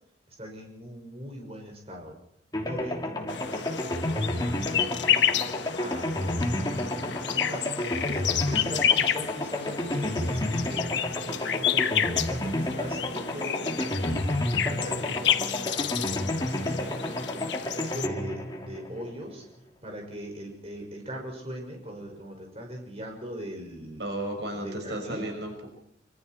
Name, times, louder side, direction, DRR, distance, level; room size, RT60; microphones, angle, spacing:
voice 1, 0.3-2.2 2.6-19.4 19.8-24.0 24.5-25.3, equal, 30° right, 1 dB, 6.2 m, -41 dB
sound 1, 2.5-19.5, left 1 dB, 20° left, 3.1 m, -31 dB
sound 2, 3.3-18.1, left 9 dB, 75° left, 1.3 m, -30 dB
voice 2, 24.0-25.7, right 1 dB, 65° right, 4 dB, 5.4 m, -34 dB
25.5 x 25.5 x 4.5 m, 0.71 s
head